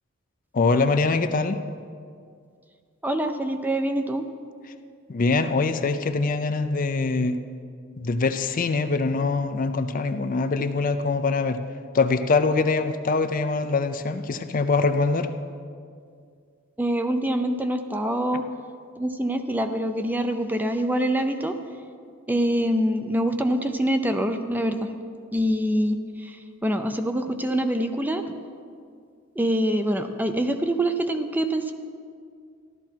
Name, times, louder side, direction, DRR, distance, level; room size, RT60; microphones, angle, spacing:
voice 1, 0.5-1.6 5.1-7.4 8.0-11.6 11.9-15.3, left 3 dB, 45° left, 9 dB, 0.5 m, -23 dB
voice 2, 3.0-4.2 16.8-18.4 19.0-21.5 22.3-24.9 25.3-26.0 26.2-26.3 26.6-28.2 29.4-31.7, right 1 dB, 10° right, 7 dB, 0.5 m, -25 dB
13.5 x 12.0 x 4.5 m, 2.2 s
head